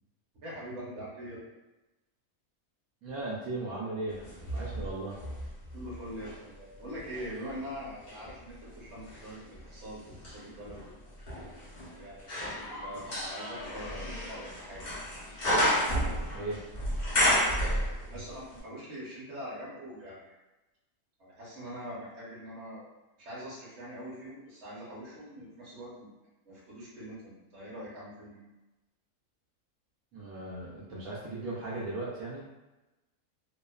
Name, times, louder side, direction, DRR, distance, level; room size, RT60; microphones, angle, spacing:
voice 1, 0.4-1.4 5.7-11.0 12.0-14.9 18.1-20.4 21.2-22.9 23.2-26.1 26.4-28.4, equal, 55° right, -7 dB, 1.1 m, -43 dB
voice 2, 3.0-5.2 16.2-16.6 30.1-32.4, right 2 dB, 75° right, -8 dB, 1.0 m, -37 dB
sound 1, 4.2-6.4 7.0-18.3 18.6-18.7, equal, 50° left, 0.5 m, -32 dB
2.8 x 2.1 x 2.2 m, 1.1 s
omnidirectional pair, 1.5 m